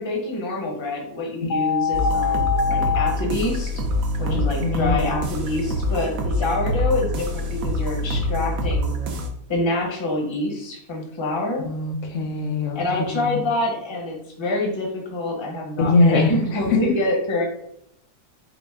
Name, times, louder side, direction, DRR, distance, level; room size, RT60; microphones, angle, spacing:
voice 1, 0.0-3.7 4.2-8.9 9.5-11.7 12.7-17.4, left 2 dB, 25° left, -1 dB, 0.8 m, -26 dB
sound 1, 1.5-3.1, left 6 dB, 85° left, 1.1 m, -23 dB
sound 2, 1.9-9.3, left 1 dB, 65° right, 1.0 m, -25 dB
voice 2, 4.3-5.2 11.6-12.8 13.1-13.4 15.8-17.0, left 3 dB, 65° left, 3 dB, 0.9 m, -22 dB
5.1 x 2.1 x 3.5 m, 0.74 s
omnidirectional pair, 1.6 m